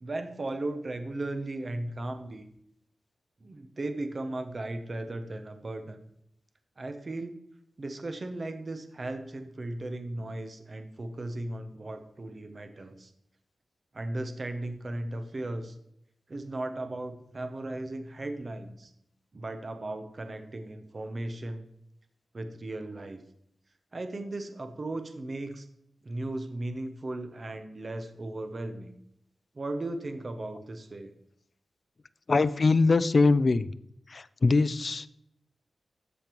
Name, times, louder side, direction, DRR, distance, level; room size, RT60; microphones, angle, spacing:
voice 1, 0.0-2.5 3.4-6.0 6.8-7.4 7.8-13.1 13.9-15.8 16.3-18.9 19.3-21.7 22.3-23.2 23.9-25.7 26.0-29.0 29.5-31.1, right 2 dB, 35° right, 7 dB, 0.6 m, -36 dB
voice 2, 32.3-33.7 34.1-35.1, left 3 dB, 35° left, 14 dB, 0.3 m, -22 dB
13.0 x 5.2 x 3.0 m, 0.75 s
wide cardioid pair, 175°, 0 cm